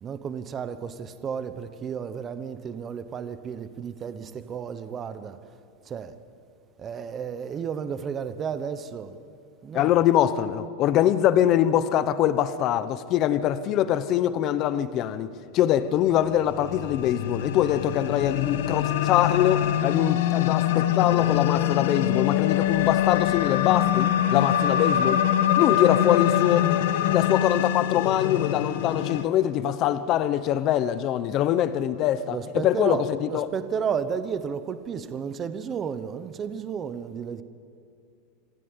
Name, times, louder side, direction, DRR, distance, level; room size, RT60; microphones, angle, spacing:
voice 1, 0.0-5.4 5.8-6.1 6.8-9.2 9.6-9.9 32.3-37.4, right 7 dB, 20° right, 0.9 m, -32 dB
voice 2, 9.7-15.3 15.5-25.2 25.6-26.7 27.1-32.4 32.6-33.0 33.3-33.5, left 11 dB, 35° left, 0.8 m, -23 dB
sound 1, 16.1-29.2, left 11 dB, 75° left, 1.4 m, -24 dB
26.5 x 16.0 x 9.7 m
supercardioid pair, 170°, 0 cm